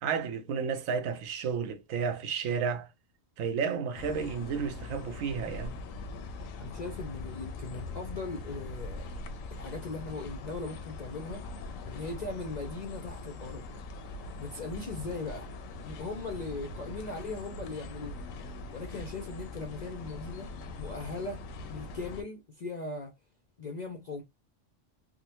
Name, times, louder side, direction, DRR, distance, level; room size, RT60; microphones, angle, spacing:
voice 1, 0.0-2.9 3.4-5.7, right 6 dB, 85° right, 1.0 m, -32 dB
sound 1, 3.9-22.2, left 3 dB, 85° left, 1.0 m, -42 dB
voice 2, 6.6-9.1 9.5-11.4 11.9-13.7 14.4-15.5 15.9-18.2 18.7-20.5 20.8-23.2 23.6-24.2, left 3 dB, 55° left, 0.4 m, -39 dB
3.6 x 2.0 x 2.8 m
omnidirectional pair, 1.3 m